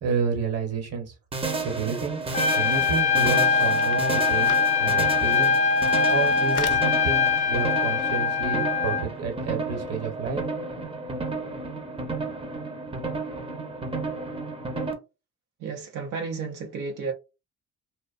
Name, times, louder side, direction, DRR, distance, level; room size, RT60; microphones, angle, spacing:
voice 1, 0.0-1.1 1.6-2.2 2.6-4.5 4.8-5.5 6.1-10.4, right 5 dB, 55° right, 1.0 m, -30 dB
sound 1, 1.3-14.9, right 3 dB, 20° right, 0.6 m, -32 dB
sound 2, 2.3-2.5 2.8-2.9 3.1-4.7 5.3-5.4 5.6-6.9 7.3-7.4, left 9 dB, 80° left, 0.5 m, -40 dB
Trumpet, 2.3-9.1, left 5 dB, 25° left, 0.3 m, -22 dB
voice 2, 15.6-17.1, right 4 dB, 85° right, 0.6 m, -32 dB
2.5 x 2.1 x 2.4 m
cardioid pair, 90°, 30 cm